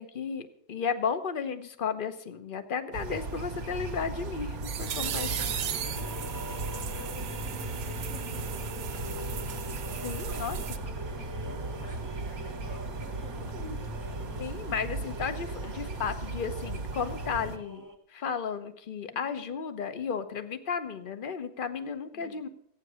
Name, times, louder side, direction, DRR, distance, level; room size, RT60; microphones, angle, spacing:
voice 1, 0.0-5.5 10.0-10.6 14.4-17.8 18.1-22.5, left 6 dB, 40° left, 10 dB, 0.9 m, -34 dB
sound 1, 2.9-17.6, right 2 dB, 60° right, 1.6 m, -37 dB
sound 2, 4.0-10.8, right 8 dB, 80° right, 1.5 m, -37 dB
voice 2, 4.8-9.5 9.8-14.2 14.7-14.8 15.5-15.7 19.1-19.3 22.1-22.5, left 3 dB, 85° left, 1 dB, 2.9 m, -50 dB
sound 3, 4.8-18.0, equal, 15° right, 0.7 m, -45 dB
14.5 x 9.0 x 6.3 m, 0.69 s
omnidirectional pair, 1.8 m